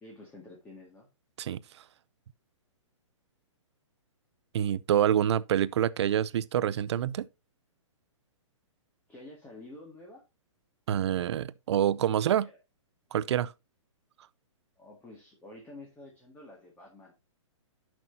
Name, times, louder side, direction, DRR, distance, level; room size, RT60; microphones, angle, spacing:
voice 1, 0.0-1.1 9.1-10.2 12.1-12.5 14.8-17.1, left 2 dB, 10° left, 1.9 m, -49 dB
voice 2, 4.5-7.3 10.9-12.5 13.1-13.5, right 10 dB, 55° right, 0.6 m, -26 dB
11.0 x 6.0 x 2.7 m
hypercardioid pair, 155°, 16 cm